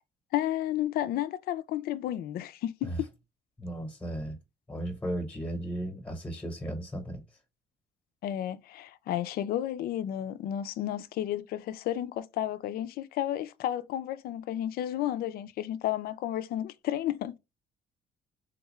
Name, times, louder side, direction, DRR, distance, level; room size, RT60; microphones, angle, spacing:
voice 1, 0.3-3.1 8.2-17.4, left 12 dB, 65° left, 0.4 m, -32 dB
voice 2, 3.6-4.4 4.7-7.2, right 1 dB, 10° left, 0.9 m, -35 dB
3.6 x 2.3 x 3.0 m
cardioid pair, 110°, 17 cm